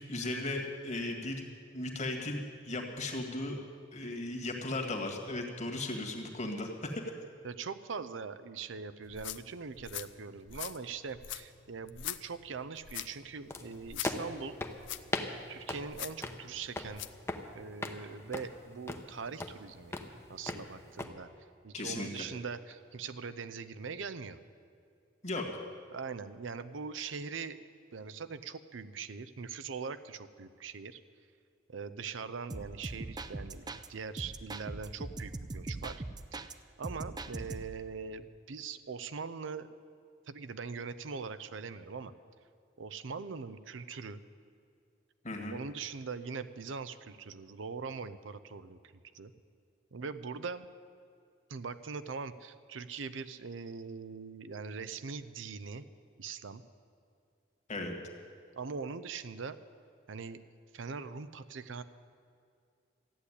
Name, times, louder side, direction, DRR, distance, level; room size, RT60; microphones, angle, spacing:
voice 1, 0.1-1.4 1.7-3.6 3.9-7.0 21.7-22.3 25.2-25.5 45.2-45.6 57.7-58.0, left 2 dB, 40° left, 2 dB, 1.8 m, -36 dB
voice 2, 7.4-14.6 15.5-17.0 17.5-19.9 20.3-21.3 21.6-24.4 25.9-27.6 27.9-31.0 31.7-36.0 36.3-36.4 36.8-39.7 40.3-42.1 42.8-44.2 45.5-48.8 49.1-49.3 49.9-50.7 51.5-55.8 56.2-56.6 58.6-59.6 60.1-60.4 60.7-61.8, right 5 dB, 85° right, 13 dB, 0.6 m, -41 dB
sound 1, 9.0-17.2, left 12 dB, 70° left, 0.5 m, -44 dB
sound 2, 13.5-21.1, left 2 dB, 15° left, 0.8 m, -40 dB
sound 3, 32.5-33.9 34.2-36.5 36.8-37.8, right 2 dB, 20° right, 0.5 m, -41 dB
14.0 x 8.4 x 9.8 m, 2.3 s
head